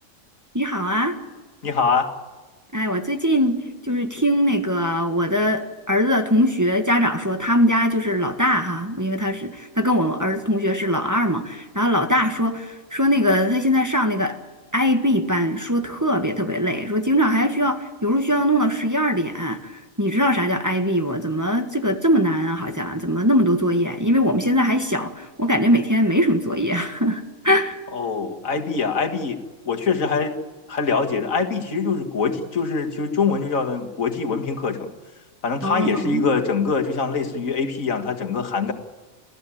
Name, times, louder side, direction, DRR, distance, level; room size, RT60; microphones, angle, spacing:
voice 1, 0.5-1.2 2.7-3.6 3.9-14.3 14.7-27.8 35.6-36.2, equal, 15° right, 5 dB, 1.6 m, -21 dB
voice 2, 1.6-2.1 27.9-29.4 29.7-30.4 30.7-34.9 35.4-38.7, left 5 dB, 80° left, 4 dB, 2.2 m, -23 dB
28.0 x 16.0 x 8.9 m, 1.3 s
omnidirectional pair, 1.4 m